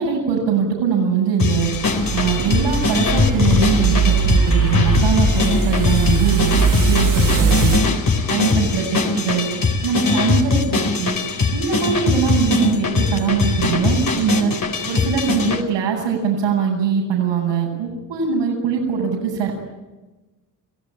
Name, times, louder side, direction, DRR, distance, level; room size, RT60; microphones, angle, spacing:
voice 1, 0.0-1.7 2.1-7.8 8.3-9.5 9.8-11.2 11.5-14.5 14.9-19.5, right 6 dB, 80° right, -5 dB, 7.4 m, -22 dB
sound 1, 1.4-15.6, left 4 dB, 45° left, 4.3 m, -21 dB
sound 2, 1.7-7.8, right 5 dB, 40° right, 3.4 m, -20 dB
30.0 x 16.0 x 9.1 m, 1.1 s
hypercardioid pair, 60°, 48 cm